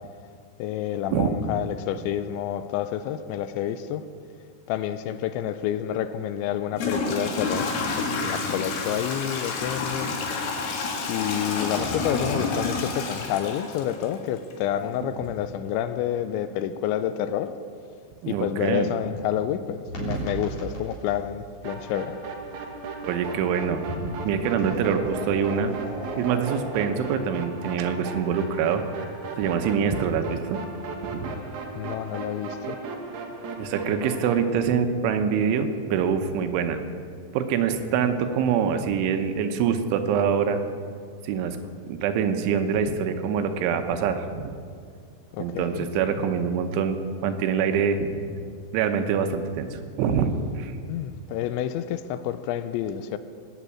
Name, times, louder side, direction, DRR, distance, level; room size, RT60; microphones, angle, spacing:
voice 1, 0.6-4.0 4.7-10.1 11.1-17.6 18.3-22.2 31.8-32.8 45.3-46.2 50.9-53.2, left 10 dB, 85° left, 12 dB, 2.8 m, -29 dB
Toilet flush / Trickle dribble, 5.9-6.0 6.7-14.5, left 3 dB, 60° left, 3.5 m, -29 dB
voice 2, 18.2-18.9 20.0-20.3 23.1-23.8 24.2-25.7 26.2-30.6 31.0-31.3 33.6-36.8 37.3-40.6 41.2-41.6 41.8-44.5 45.4-47.0 47.2-48.4 48.7-50.7, right 7 dB, 85° right, 7 dB, 3.4 m, -25 dB
sound 1, 19.9-26.8, right 2 dB, 40° left, 4.2 m, -39 dB
sound 2, 21.6-34.4, right 4 dB, 65° right, 1.9 m, -36 dB
20.0 x 8.1 x 8.6 m, 2.2 s
omnidirectional pair, 5.5 m